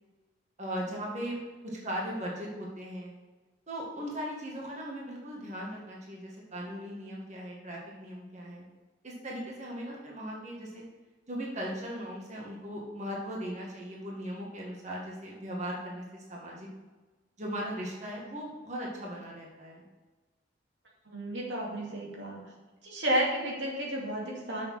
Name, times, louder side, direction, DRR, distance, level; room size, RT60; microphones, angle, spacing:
voice 1, 0.6-1.4 1.6-3.1 3.7-8.6 9.0-10.8 11.3-16.7 17.4-19.8, equal, 40° right, -3 dB, 1.8 m, -38 dB
voice 2, 21.0-22.4 22.8-24.6, right 1 dB, 90° right, -3 dB, 2.6 m, -32 dB
7.0 x 6.9 x 5.6 m, 1.2 s
head